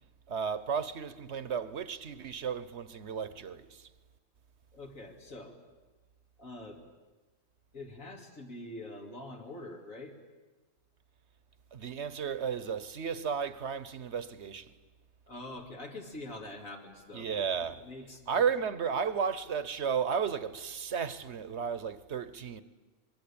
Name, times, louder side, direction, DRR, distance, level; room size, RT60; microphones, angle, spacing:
voice 1, 0.3-3.9 11.7-14.7 17.1-17.8 18.3-22.6, right 6 dB, 55° right, 1.2 m, -33 dB
voice 2, 4.7-5.5 6.4-6.8 7.7-10.1 15.3-17.3 17.8-18.4, left 2 dB, 75° left, 3.1 m, -44 dB
25.5 x 22.0 x 8.7 m
omnidirectional pair, 1.4 m